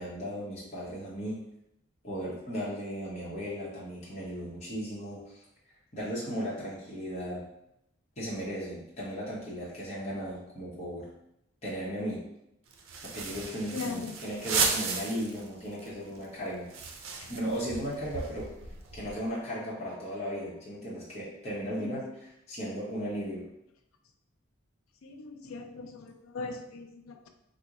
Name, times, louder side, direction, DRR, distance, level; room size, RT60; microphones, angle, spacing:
voice 1, 0.0-1.4 2.0-5.4 5.9-7.4 8.2-11.1 11.6-12.2 13.1-16.7 17.3-18.5 18.9-23.4, equal, 30° left, -7 dB, 0.8 m, -36 dB
sound 1, 12.7-15.5 15.8-15.9 16.1-19.3, right 4 dB, 80° right, 0.5 m, -34 dB
voice 2, 13.7-14.2 17.2-17.3 21.8-21.9 25.0-27.3, left 4 dB, 90° left, 6 dB, 0.4 m, -39 dB
2.9 x 2.1 x 3.6 m, 0.81 s
head